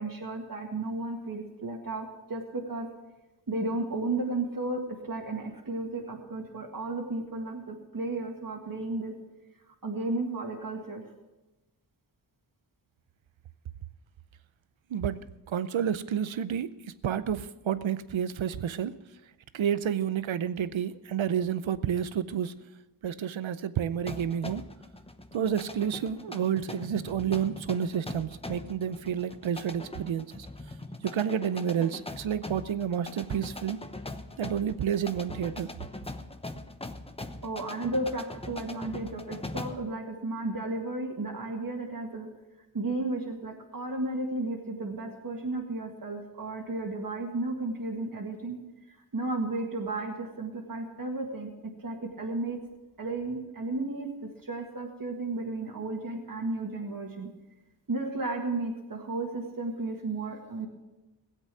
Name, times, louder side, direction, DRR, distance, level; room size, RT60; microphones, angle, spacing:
voice 1, 0.0-2.9 3.5-9.1 9.7-11.0 37.4-42.3 42.7-48.6 48.9-51.5 51.8-52.6 53.0-54.1 54.4-57.3 57.9-60.7, right 2 dB, 45° right, 0 dB, 1.9 m, -33 dB
voice 2, 15.5-16.7 17.0-18.9 19.5-22.5 23.0-24.6 25.3-30.5 31.0-33.8 34.4-35.7, right 8 dB, 80° right, 14 dB, 0.7 m, -30 dB
sound 1, 24.1-39.9, left 2 dB, 10° left, 0.9 m, -42 dB
17.0 x 8.1 x 6.2 m, 1.0 s
cardioid pair, 55°, 46 cm